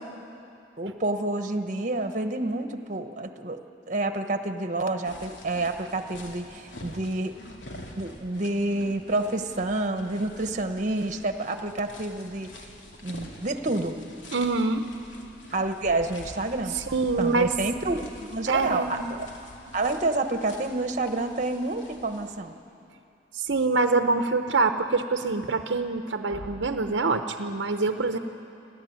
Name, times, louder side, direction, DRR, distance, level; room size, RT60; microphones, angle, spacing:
voice 1, 0.8-3.6 3.9-7.4 8.0-12.5 13.0-14.0 15.5-16.7 17.2-19.3 19.7-22.5, right 2 dB, 45° right, 7 dB, 1.1 m, -28 dB
sound 1, 5.0-22.4, left 1 dB, 85° left, 2.7 m, -46 dB
voice 2, 14.3-14.9 16.7-17.5 18.5-19.1 23.3-28.2, right 3 dB, 70° right, 7 dB, 0.8 m, -25 dB
28.5 x 12.5 x 9.5 m, 2.7 s
head